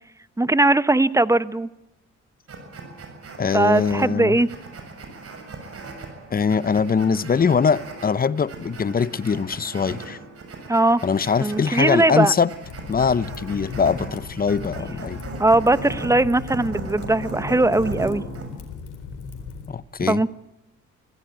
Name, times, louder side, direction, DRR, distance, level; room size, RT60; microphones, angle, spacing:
voice 1, 0.4-1.7 3.5-4.5 10.7-11.0 11.4-12.3 15.4-18.2 20.1-20.3, right 2 dB, 10° right, 1.0 m, -19 dB
sound 1, 2.5-18.5, right 3 dB, 50° right, 7.3 m, -38 dB
voice 2, 3.4-4.4 6.3-10.2 11.0-12.5 12.9-15.2 19.7-20.2, left 6 dB, 30° left, 0.9 m, -22 dB
Fire, 12.6-19.7, left 5 dB, 85° left, 4.3 m, -37 dB
25.5 x 16.5 x 9.0 m
cardioid pair, 90°, 30 cm